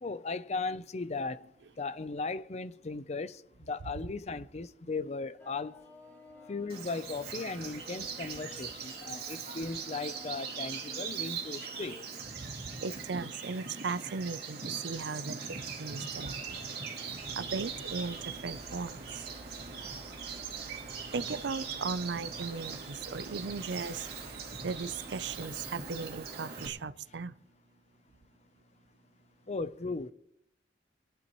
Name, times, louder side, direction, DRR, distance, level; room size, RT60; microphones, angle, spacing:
voice 1, 0.0-1.5 1.8-5.8 6.5-12.0 29.5-30.1, left 3 dB, 40° left, 0.6 m, -37 dB
sound 1, 5.4-12.3, equal, 10° left, 3.0 m, -54 dB
Bird vocalization bird call bird song, 6.7-26.7, right 5 dB, 60° right, 2.7 m, -41 dB
voice 2, 12.8-16.4 17.4-18.2 18.4-19.0 21.1-24.1 24.6-27.3, right 4 dB, 80° right, 0.5 m, -37 dB
sound 2, 17.1-26.3, right 1 dB, 35° right, 3.0 m, -55 dB
25.5 x 11.5 x 3.1 m
head